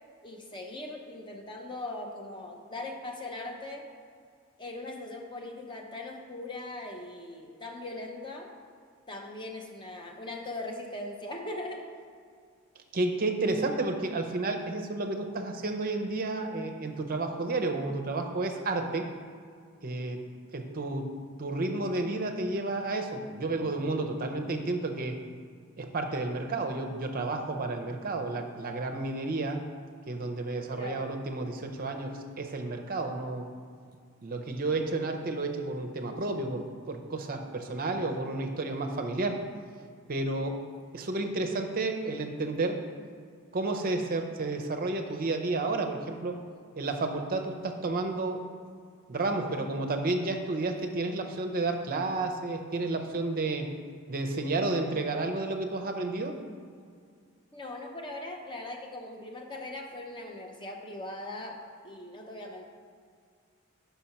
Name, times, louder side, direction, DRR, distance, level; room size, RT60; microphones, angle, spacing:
voice 1, 0.2-3.9 4.6-8.5 9.1-11.9 30.7-31.1 57.5-62.6, left 2 dB, 20° left, 2 dB, 0.7 m, -40 dB
voice 2, 12.9-19.1 19.8-20.2 20.5-21.1 21.4-25.2 25.8-29.6 30.1-33.5 34.2-39.4 40.1-40.6 40.9-42.8 43.5-46.4 46.8-48.4 49.1-53.7 54.1-56.4, right 2 dB, 40° right, 4 dB, 0.6 m, -31 dB
5.7 x 4.2 x 5.7 m, 2.1 s
head